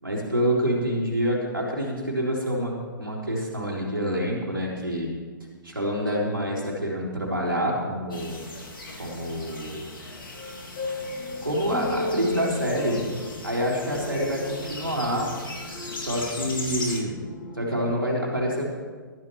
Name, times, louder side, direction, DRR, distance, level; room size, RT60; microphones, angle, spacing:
voice 1, 0.0-5.1 5.6-8.4 9.0-9.8 11.4-13.0 13.4-15.3 15.9-17.2 17.5-18.6, equal, 90° right, -3 dB, 3.9 m, -27 dB
sound 1, 8.1-17.0, left 2 dB, 75° left, 2.5 m, -38 dB
sound 2, 10.1-17.9, left 2 dB, 40° left, 2.9 m, -36 dB
20.5 x 14.0 x 3.2 m, 1.5 s
figure-of-eight pair, 120°, 11 cm